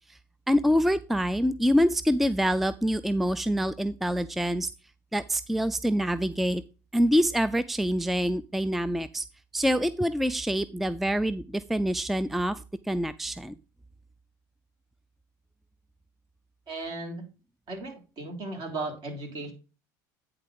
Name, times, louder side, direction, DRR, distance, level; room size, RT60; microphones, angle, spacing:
voice 1, 0.5-4.7 5.1-6.6 6.9-9.3 9.5-13.5, equal, ahead, 15 dB, 0.4 m, -26 dB
voice 2, 16.7-17.2 17.7-19.5, right 2 dB, 50° right, 2 dB, 3.6 m, -36 dB
9.5 x 3.9 x 5.2 m, 0.32 s
supercardioid pair, 90°, 10 cm